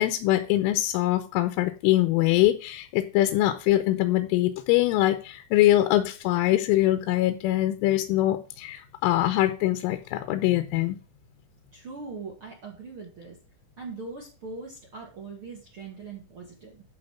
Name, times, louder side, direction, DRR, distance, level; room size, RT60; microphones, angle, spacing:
voice 1, 0.0-11.0, left 15 dB, 85° left, 8 dB, 3.3 m, -23 dB
voice 2, 11.7-13.4 13.8-16.8, right 4 dB, 75° right, -1 dB, 1.2 m, -41 dB
12.0 x 4.1 x 5.7 m, 0.35 s
omnidirectional pair, 5.7 m